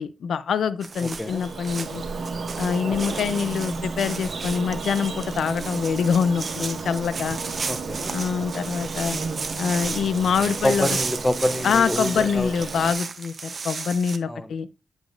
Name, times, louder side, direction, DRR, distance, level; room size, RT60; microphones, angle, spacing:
voice 1, 0.0-2.0 2.6-7.4 8.1-9.2 9.6-10.9 11.6-14.7, left 6 dB, 80° left, 0.5 m, -25 dB
sound 1, 0.8-14.2, right 4 dB, 40° right, 0.8 m, -34 dB
Bird vocalization bird call bird song, 0.9-12.9, right 4 dB, 60° right, 1.6 m, -33 dB
voice 2, 1.0-1.4 2.9-3.3 7.7-8.7 10.6-12.5 14.3-14.5, left 1 dB, 10° left, 0.7 m, -27 dB
8.3 x 8.1 x 2.5 m
wide cardioid pair, 125°, 0 cm